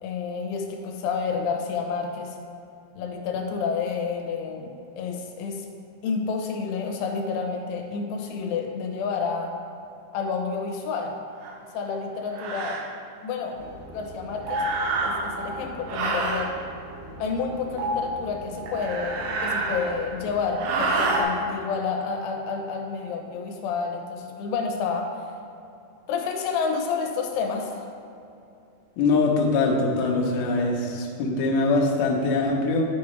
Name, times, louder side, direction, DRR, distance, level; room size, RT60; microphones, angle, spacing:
voice 1, 0.0-2.4 2.9-5.7 6.0-9.5 10.1-11.1 11.7-12.8 13.2-13.6 13.9-14.7 15.0-16.5 17.2-25.1 26.1-27.9, left 5 dB, 90° left, 2 dB, 3.2 m, -29 dB
sound 1, 11.4-11.6 12.3-12.8 14.5-15.4 15.9-16.5 18.7-20.1 20.6-21.3, right 3 dB, 85° right, 2.9 m, -28 dB
sound 2, 13.5-21.2, equal, 65° right, 2.3 m, -35 dB
voice 2, 29.0-32.9, left 3 dB, 75° left, -1 dB, 2.5 m, -23 dB
12.0 x 4.8 x 3.2 m, 2.6 s
omnidirectional pair, 5.3 m